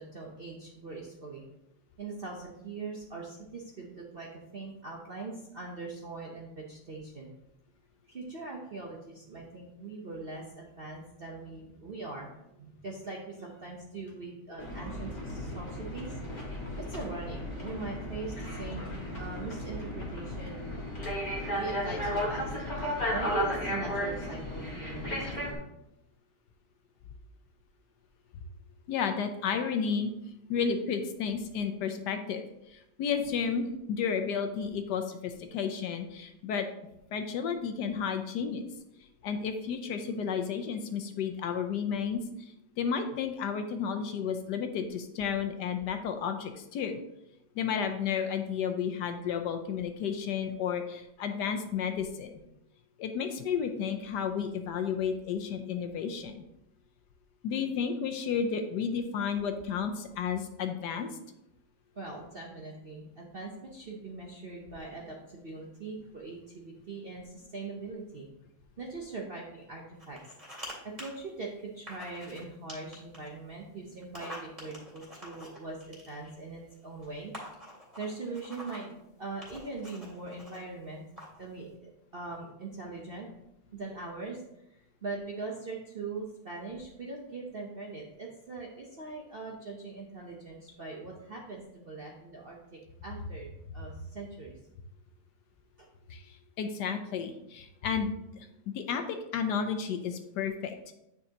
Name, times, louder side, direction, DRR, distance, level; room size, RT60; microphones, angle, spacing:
voice 1, 0.0-1.4 2.0-7.3 8.1-16.2 16.8-20.6 21.6-25.6 61.9-68.3 68.8-70.2 70.6-77.3 78.0-81.0 81.4-83.3 83.7-84.4 84.7-94.6, right 3 dB, 50° right, -2 dB, 0.7 m, -41 dB
sound 1, 14.6-25.5, equal, 25° left, 1.6 m, -34 dB
voice 2, 28.9-30.1 30.5-36.7 37.1-38.6 39.2-47.0 47.6-52.3 53.0-56.4 57.4-61.1 96.1-100.9, left 6 dB, 70° left, 6 dB, 1.1 m, -32 dB
sound 2, 70.0-70.7 71.0-71.1 71.9-72.4 72.7-73.3 74.0-76.4 77.0-77.1 77.3-78.9 79.4-80.6 81.2-81.4, equal, 20° right, 2.4 m, -46 dB
9.0 x 5.5 x 2.8 m, 0.85 s
omnidirectional pair, 2.0 m